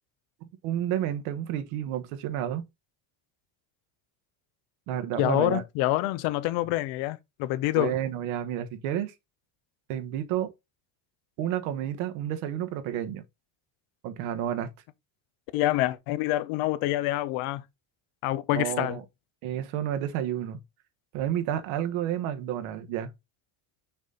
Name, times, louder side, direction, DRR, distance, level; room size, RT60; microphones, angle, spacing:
voice 1, 0.6-2.6 4.9-5.6 7.7-9.1 9.9-10.5 11.4-13.2 14.0-14.7 18.5-19.0 19.4-20.6 21.1-23.1, right 11 dB, 90° right, 1.2 m, -30 dB
voice 2, 5.2-8.0 15.5-17.6 18.2-19.0, left 16 dB, 90° left, 0.8 m, -26 dB
6.1 x 4.0 x 3.8 m
supercardioid pair, 90°, 48 cm